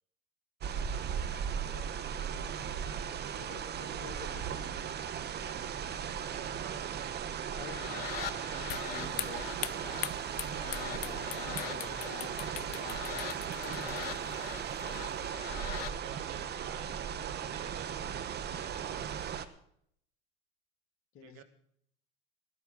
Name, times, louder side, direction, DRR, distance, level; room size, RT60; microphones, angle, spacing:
sound 1, 0.6-19.5, right 8 dB, 35° right, 1.2 m, -37 dB
voice 1, 1.2-2.0 3.3-4.9 7.6-7.8 8.8-9.6 10.6-13.3 13.6-14.2 21.1-21.4, left 9 dB, 45° left, 9 dB, 2.2 m, -49 dB
voice 2, 6.3-7.1 7.8-8.8 16.0-19.1 21.2-21.4, right 10 dB, 55° right, 10 dB, 1.8 m, -50 dB
sound 2, 7.5-15.9, left 10 dB, 80° left, 1.0 m, -44 dB
sound 3, 8.7-15.3, left 16 dB, 65° left, 0.7 m, -43 dB
15.5 x 13.0 x 5.6 m, 0.68 s
hypercardioid pair, 85°, 29 cm